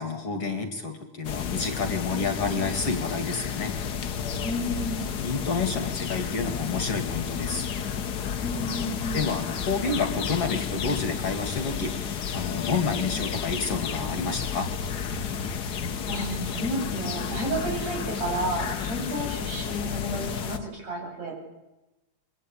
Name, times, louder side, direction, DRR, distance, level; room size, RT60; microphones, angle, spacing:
voice 1, 0.0-3.7 5.2-7.7 9.1-12.0 12.3-14.7, left 4 dB, 50° left, 8 dB, 2.6 m, -29 dB
sound 1, 1.2-20.6, left 7 dB, 80° left, 0.9 m, -31 dB
voice 2, 4.4-5.0 8.4-9.3 16.1-21.4, right 1 dB, 55° right, 0 dB, 9.4 m, -31 dB
25.5 x 23.5 x 8.8 m, 1.0 s
omnidirectional pair, 3.7 m